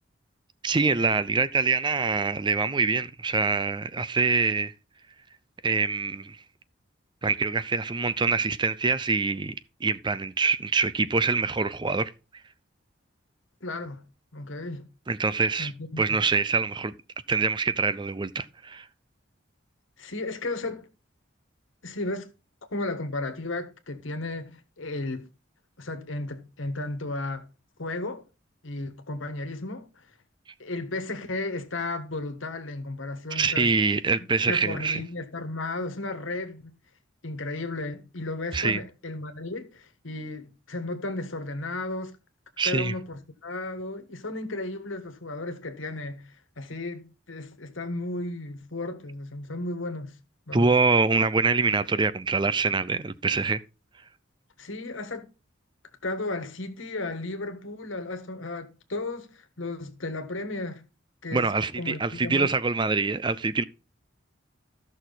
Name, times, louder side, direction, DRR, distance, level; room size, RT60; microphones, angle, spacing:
voice 1, 0.6-4.7 5.6-6.4 7.2-9.6 9.8-12.1 15.1-15.7 16.0-16.9 17.3-18.9 33.3-35.0 38.5-38.8 42.6-42.9 50.5-53.6 61.3-63.6, right 4 dB, 25° right, 0.5 m, -25 dB
voice 2, 13.6-14.0 14.3-14.9 15.6-16.0 20.0-20.9 21.8-22.3 22.7-25.3 25.8-27.5 27.8-28.3 28.6-30.0 30.6-33.7 34.5-36.7 37.2-42.2 42.6-50.1 50.5-50.7 54.6-55.3 56.0-60.9 61.2-62.5, left 2 dB, 80° left, 1.5 m, -34 dB
13.5 x 6.3 x 4.0 m
head